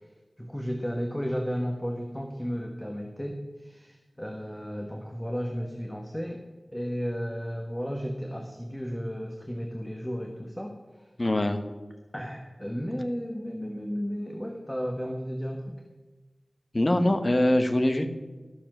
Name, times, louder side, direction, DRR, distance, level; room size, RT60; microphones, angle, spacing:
voice 1, 0.4-6.4 6.7-10.8 12.1-15.7, equal, 10° left, 2 dB, 1.2 m, -33 dB
voice 2, 11.2-11.6 16.7-18.1, left 1 dB, 40° left, 8 dB, 1.1 m, -23 dB
13.0 x 7.2 x 6.1 m, 1.3 s
wide cardioid pair, 70°, 0 cm